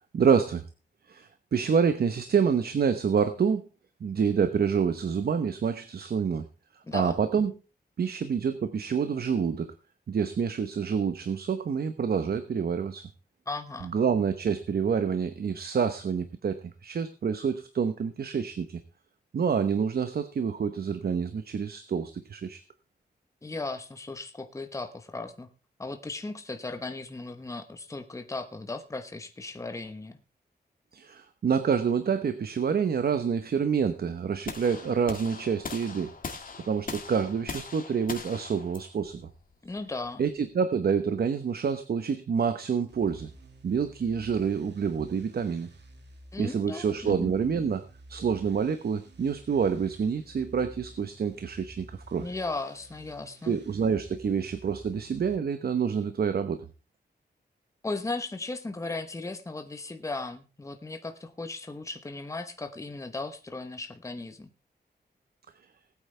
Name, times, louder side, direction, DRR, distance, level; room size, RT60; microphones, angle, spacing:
voice 1, 0.1-0.6 1.1-3.6 4.0-6.4 6.9-7.5 8.0-9.7 10.1-13.1 13.8-18.8 19.3-22.6 30.9-36.1 36.7-39.3 40.2-43.3 43.6-45.7 46.4-47.8 48.1-52.3 53.4-56.6, right 6 dB, 60° right, 10 dB, 1.0 m, -27 dB
voice 2, 6.9-7.2 13.5-13.9 23.4-25.5 25.8-30.2 39.6-40.2 46.3-47.3 52.2-53.6 57.8-64.5, left 3 dB, 15° left, 7 dB, 1.0 m, -36 dB
sound 1, 34.5-40.5, left 4 dB, 50° left, 1.9 m, -41 dB
sound 2, 42.9-55.4, right 1 dB, 80° right, 2.3 m, -51 dB
20.0 x 8.8 x 3.3 m, 0.32 s
wide cardioid pair, 170°, 18 cm